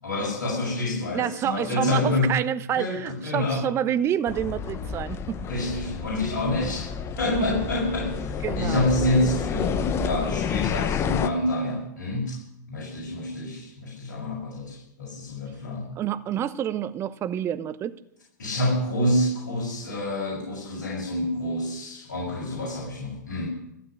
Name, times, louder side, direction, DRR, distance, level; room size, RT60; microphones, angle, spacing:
voice 1, 0.0-2.3 2.7-3.6 5.5-6.9 7.2-12.4 12.7-15.9 18.4-23.5, left 1 dB, 60° left, -4 dB, 6.4 m, -27 dB
voice 2, 1.1-5.4 7.4-7.5 8.4-8.8 16.0-18.0, right 10 dB, 25° right, 13 dB, 0.8 m, -28 dB
sound 1, 4.3-11.3, left 7 dB, 25° left, 0.9 m, -29 dB
15.0 x 8.0 x 9.8 m, 0.78 s
figure-of-eight pair, 100°, 10 cm